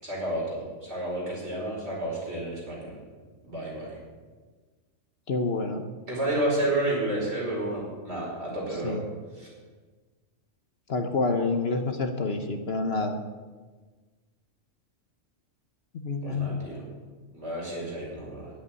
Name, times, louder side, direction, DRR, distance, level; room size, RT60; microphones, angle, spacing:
voice 1, 0.0-3.0 3.4-4.0 6.1-9.0 9.3-9.5 16.2-16.8 17.3-18.5, right 1 dB, 50° right, -5 dB, 5.1 m, -31 dB
voice 2, 5.3-5.8 8.8-9.1 10.9-13.2 16.0-16.6, left 3 dB, 55° left, 6 dB, 1.1 m, -28 dB
10.5 x 8.3 x 9.5 m, 1.4 s
omnidirectional pair, 1.4 m